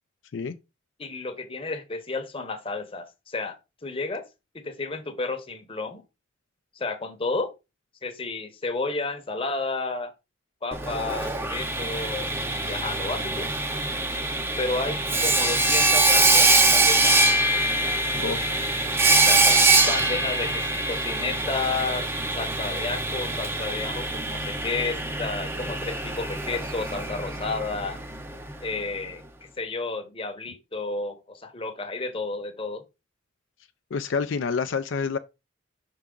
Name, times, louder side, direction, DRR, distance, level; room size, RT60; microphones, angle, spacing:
voice 1, 1.0-4.3 4.5-6.0 6.7-7.5 8.0-10.1 10.6-13.5 14.6-17.3 19.3-22.1 22.4-28.0 28.6-32.8, left 3 dB, 30° left, 0.9 m, -32 dB
Sawing, 10.7-28.5, right 2 dB, 10° right, 0.6 m, -23 dB
voice 2, 18.1-18.5 33.9-35.2, left 5 dB, 65° left, 0.4 m, -28 dB
5.7 x 4.7 x 3.8 m
head